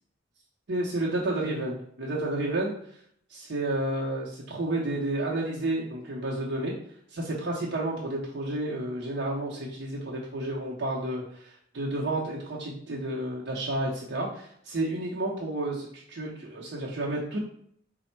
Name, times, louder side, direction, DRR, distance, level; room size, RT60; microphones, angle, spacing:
voice 1, 0.7-2.7 3.3-6.8 7.1-17.4, right 1 dB, 65° right, -4 dB, 0.6 m, -31 dB
4.1 x 2.0 x 4.3 m, 0.66 s
head